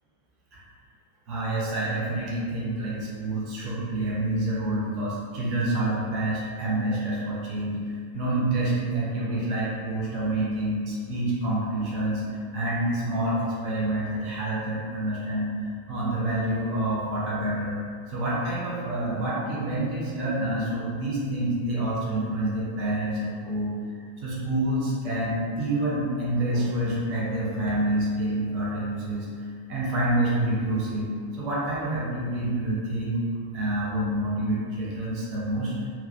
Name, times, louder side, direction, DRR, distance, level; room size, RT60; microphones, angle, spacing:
voice 1, 1.3-7.8 8.1-12.2 12.5-17.8 18.1-23.7 24.2-29.3 29.7-31.1 31.3-33.2 33.5-35.7, right 1 dB, 40° right, -6 dB, 0.6 m, -27 dB
2.2 x 2.1 x 2.6 m, 2.1 s
figure-of-eight pair, 90°, 0 cm